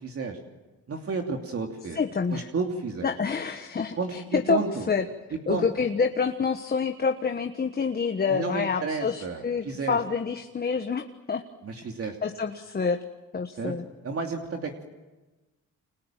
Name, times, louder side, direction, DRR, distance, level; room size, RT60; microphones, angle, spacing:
voice 1, 0.0-0.4 0.9-2.0 2.3-3.1 4.0-4.9 5.3-5.7 8.3-10.0 11.6-12.2 13.6-13.7 14.0-14.8, right 4 dB, 45° right, 2 dB, 2.9 m, -31 dB
voice 2, 1.9-2.5 3.0-5.0 5.5-11.4 12.2-13.0 13.3-13.8, left 5 dB, 30° left, 6 dB, 1.4 m, -27 dB
29.5 x 25.5 x 7.6 m, 1.2 s
cardioid pair, 105°, 32 cm